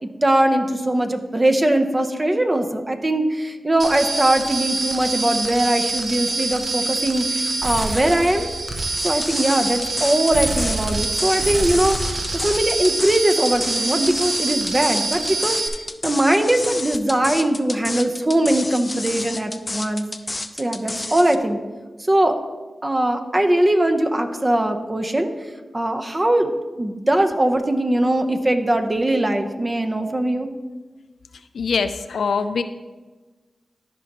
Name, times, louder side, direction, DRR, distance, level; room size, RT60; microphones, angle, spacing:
voice 1, 0.0-8.5 9.0-15.6 16.0-20.1 20.6-21.6 22.1-22.4 22.8-25.3 25.7-26.5 26.8-30.5, right 1 dB, 30° right, 6 dB, 0.8 m, -20 dB
sound 1, 3.8-15.7, right 3 dB, 55° right, 1.2 m, -25 dB
sound 2, 8.9-21.4, left 2 dB, 35° left, 0.5 m, -30 dB
voice 2, 31.5-32.6, left 5 dB, 85° left, 11 dB, 0.4 m, -23 dB
13.5 x 5.3 x 3.0 m, 1.3 s
cardioid pair, 45°, 0 cm